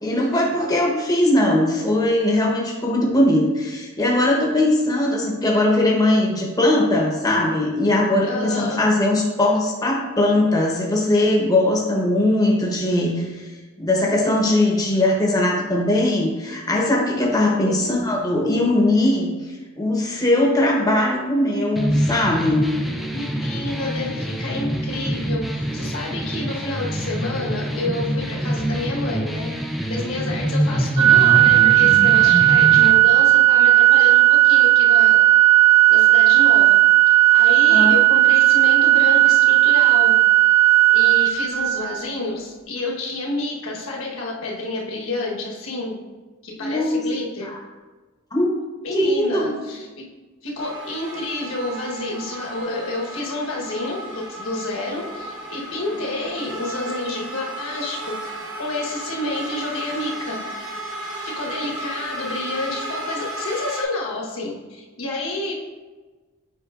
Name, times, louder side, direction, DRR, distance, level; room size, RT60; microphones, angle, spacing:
voice 1, 0.0-13.4 13.8-19.3 19.8-22.7 37.7-37.9 46.6-47.0 47.4-47.6 48.3-48.5 48.9-49.6, left 1 dB, 15° left, -2 dB, 0.9 m, -20 dB
voice 2, 8.2-8.8 17.6-17.9 23.1-35.3 35.9-36.8 37.1-40.1 40.9-46.0 46.4-47.6 48.8-50.1 50.4-60.4 61.2-65.5, left 2 dB, 70° left, -2 dB, 1.3 m, -29 dB
sound 1, 21.8-32.9, equal, ahead, 0.3 m, -25 dB
Organ, 31.0-42.0, right 15 dB, 30° right, 0.7 m, -14 dB
sound 2, 50.6-63.8, right 1 dB, 60° right, 1.0 m, -34 dB
8.1 x 5.3 x 2.5 m, 1.3 s
head